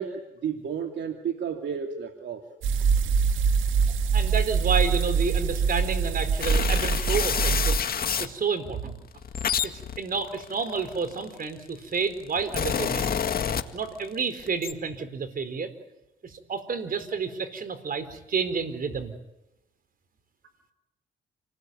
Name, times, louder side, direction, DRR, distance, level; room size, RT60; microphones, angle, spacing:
voice 1, 0.0-2.4, right 7 dB, 65° right, 4 dB, 2.9 m, -32 dB
sound 1, 2.6-7.8, right 6 dB, 85° right, 2.2 m, -24 dB
voice 2, 3.9-7.8 8.2-9.0 9.6-13.2 13.7-15.7 16.2-19.2, right 5 dB, 45° right, 10 dB, 4.5 m, -30 dB
sound 2, 6.4-8.3 9.0-11.4 12.1-14.1 14.4-14.7, left 7 dB, 50° left, 1.9 m, -28 dB
28.5 x 20.0 x 9.5 m, 0.93 s
cardioid pair, 90°, 20 cm